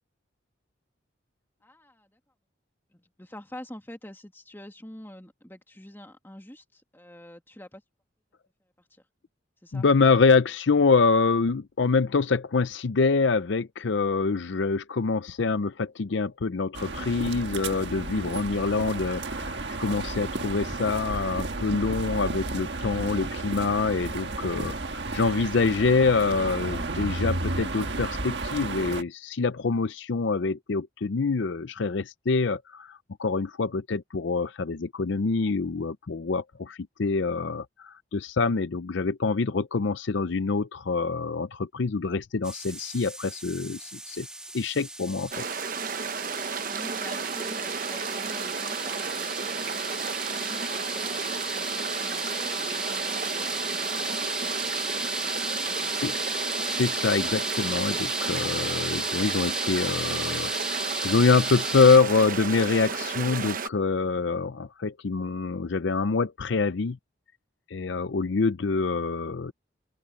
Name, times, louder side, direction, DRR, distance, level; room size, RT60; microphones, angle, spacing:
voice 1, 1.6-2.2 2.9-7.8 8.9-9.0 9.6-9.9 46.4-55.3 55.6-56.3, left 1 dB, 10° left, 2.0 m, -47 dB
voice 2, 9.7-44.3 44.5-45.4 56.0-56.1 56.7-60.5 61.0-67.0 67.7-69.5, left 4 dB, 65° left, 0.5 m, -25 dB
sound 1, 16.7-29.0, right 2 dB, 60° right, 1.6 m, -33 dB
sound 2, 42.4-62.0, right 1 dB, 5° right, 1.4 m, -34 dB
sound 3, 45.3-63.7, right 6 dB, 45° right, 0.9 m, -32 dB
open air
head